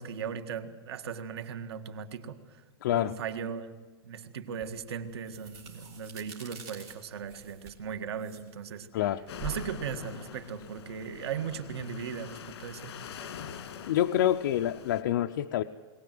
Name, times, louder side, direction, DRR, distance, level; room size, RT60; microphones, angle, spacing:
voice 1, 0.0-2.6 2.9-3.7 4.0-8.9 9.4-13.0, right 7 dB, 75° right, 8 dB, 1.7 m, -38 dB
voice 2, 2.8-3.1 8.9-9.3 13.9-15.6, left 12 dB, 55° left, 6 dB, 0.6 m, -27 dB
sound 1, 4.6-11.4, right 3 dB, 30° right, 3.3 m, -47 dB
sound 2, 9.3-15.0, left 8 dB, 75° left, 1.9 m, -44 dB
22.0 x 18.0 x 7.7 m, 1.3 s
supercardioid pair, 180°, 13 cm